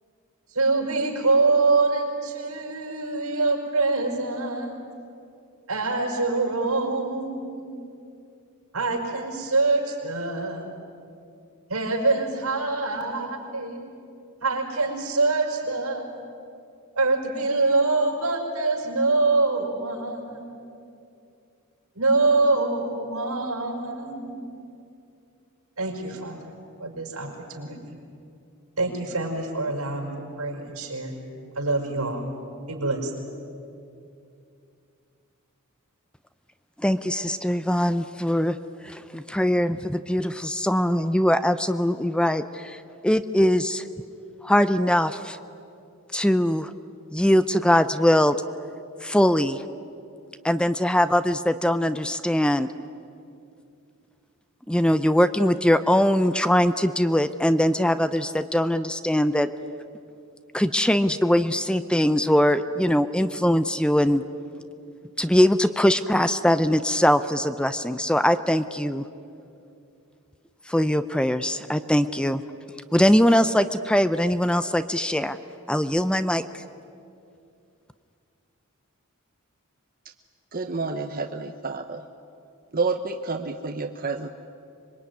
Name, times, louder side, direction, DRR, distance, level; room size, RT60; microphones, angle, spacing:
voice 1, 0.5-4.8 5.7-7.8 8.7-10.8 11.7-13.9 14.4-16.2 16.9-20.8 22.0-24.6 25.8-26.5 26.8-28.0 28.8-31.1 31.5-32.3 32.7-33.1, right 3 dB, 85° right, 2 dB, 5.5 m, -25 dB
voice 2, 36.8-38.6 38.8-43.9 44.4-45.4 46.1-46.7 47.1-48.4 49.0-49.6 50.4-52.7 54.7-59.5 60.5-64.2 65.2-69.1 70.7-72.4 72.9-75.4 75.7-76.6, equal, 5° left, 11 dB, 0.5 m, -22 dB
voice 3, 80.5-82.0 82.7-84.3, right 4 dB, 40° right, 5 dB, 0.9 m, -29 dB
26.0 x 22.5 x 9.5 m, 2.6 s
head